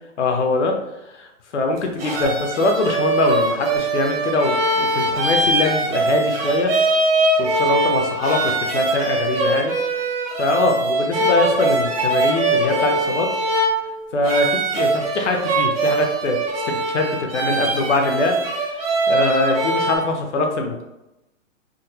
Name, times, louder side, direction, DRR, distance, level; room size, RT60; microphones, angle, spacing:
voice 1, 0.2-0.7 1.1-1.3 1.5-6.7 7.4-9.7 10.4-13.3 14.1-16.4 16.7-18.4 18.7-20.8, left 2 dB, 65° left, 3 dB, 0.7 m, -22 dB
sound 1, 1.8-20.0, right 2 dB, 50° right, 0.7 m, -22 dB
3.7 x 2.1 x 2.8 m, 0.92 s
hypercardioid pair, 175°, 38 cm